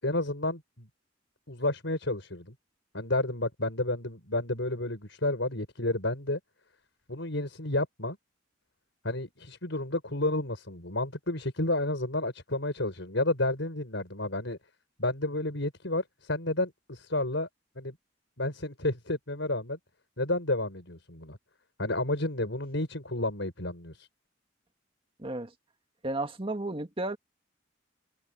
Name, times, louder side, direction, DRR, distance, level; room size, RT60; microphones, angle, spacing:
voice 1, 0.0-0.9 1.5-2.5 2.9-6.4 7.1-8.2 9.0-14.6 15.0-17.5 17.8-18.0 18.4-19.8 20.2-21.4 21.8-24.1, left 2 dB, 70° left, 6.6 m, -31 dB
voice 2, 25.2-25.5 26.0-27.2, right 2 dB, 30° right, 2.0 m, -33 dB
head